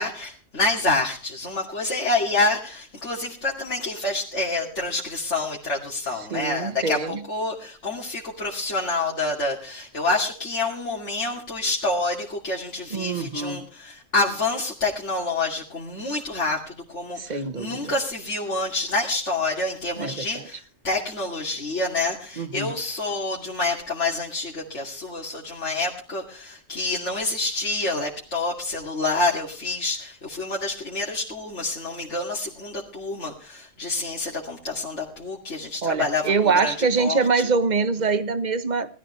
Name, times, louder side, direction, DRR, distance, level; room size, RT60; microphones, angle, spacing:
voice 1, 0.0-37.4, left 2 dB, 70° left, -3 dB, 2.9 m, -27 dB
voice 2, 6.3-7.2 12.9-13.6 17.1-17.9 20.0-20.2 22.4-22.7 35.8-38.9, right 4 dB, 35° right, 11 dB, 1.3 m, -24 dB
19.5 x 13.5 x 3.3 m, 0.40 s
omnidirectional pair, 1.3 m